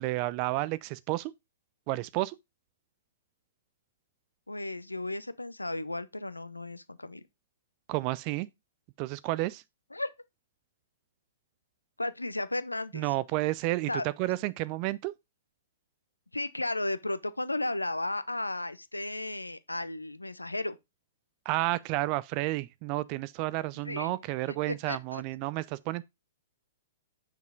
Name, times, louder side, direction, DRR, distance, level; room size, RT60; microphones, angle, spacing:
voice 1, 0.0-1.3 1.9-2.4 7.9-8.5 9.0-9.6 12.9-15.1 21.5-26.0, right 18 dB, 35° right, 0.3 m, -31 dB
voice 2, 4.5-7.3 9.9-10.1 12.0-13.1 13.9-14.1 16.3-20.8 23.8-24.1 24.5-25.2, left 2 dB, 80° left, 0.6 m, -34 dB
7.2 x 5.8 x 2.3 m
figure-of-eight pair, 110°, 0 cm